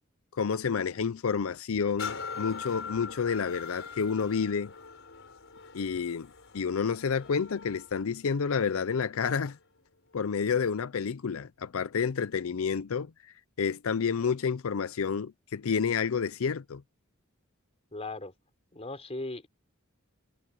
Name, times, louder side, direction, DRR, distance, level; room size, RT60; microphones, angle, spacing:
voice 1, 0.3-4.7 5.7-9.6 10.1-16.8, left 6 dB, 85° left, 0.5 m, -30 dB
sound 1, 2.0-9.6 10.2-10.3, left 5 dB, 65° left, 5.5 m, -43 dB
voice 2, 17.9-18.3 18.7-19.5, left 2 dB, 30° left, 3.7 m, -37 dB
head